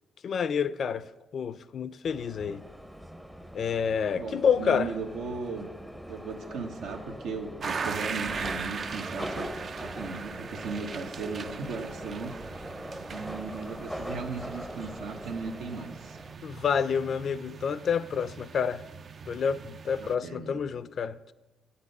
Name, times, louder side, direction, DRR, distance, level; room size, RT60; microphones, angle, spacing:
voice 1, 0.2-1.1 1.3-2.6 3.5-4.9 16.4-18.8 19.3-21.3, left 7 dB, 55° left, 0.4 m, -28 dB
Subway metro underground, 2.1-16.3, equal, 5° right, 0.6 m, -42 dB
voice 2, 4.1-5.7 6.1-9.5 9.8-12.3 13.1-16.2 20.0-20.6, right 4 dB, 80° right, 1.2 m, -37 dB
sound 1, 7.6-20.1, right 5 dB, 50° right, 0.4 m, -40 dB
8.4 x 8.1 x 5.4 m
cardioid pair, 90°, 0 cm